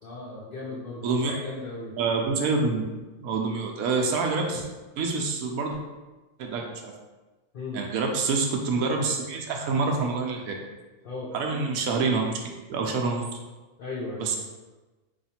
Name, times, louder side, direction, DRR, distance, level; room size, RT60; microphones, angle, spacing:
voice 1, 0.0-2.0 7.5-7.8 11.0-11.3 13.8-14.3, left 3 dB, 85° left, -4 dB, 0.4 m, -36 dB
voice 2, 2.0-2.8 3.2-4.6 5.0-5.8 6.4-6.9 7.7-10.5 11.3-13.2 14.2-14.4, right 4 dB, 70° right, 1 dB, 0.9 m, -27 dB
3.4 x 2.4 x 4.2 m, 1.2 s
omnidirectional pair, 1.7 m